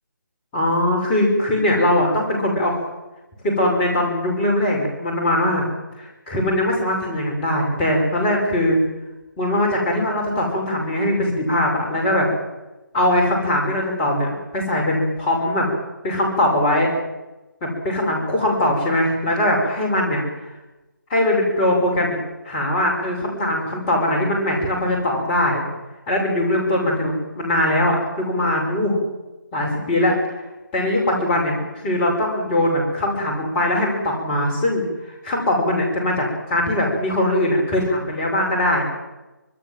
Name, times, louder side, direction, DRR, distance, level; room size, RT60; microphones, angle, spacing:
voice 1, 0.5-2.7 3.4-5.7 6.0-8.8 9.4-12.3 12.9-15.7 16.0-16.9 17.6-20.2 21.1-22.2 22.4-25.6 26.1-29.0 29.5-30.1 30.7-34.8 35.2-38.8, left 1 dB, 15° left, -1 dB, 6.6 m, -21 dB
25.5 x 20.5 x 7.8 m, 1.1 s
figure-of-eight pair, 155°, 11 cm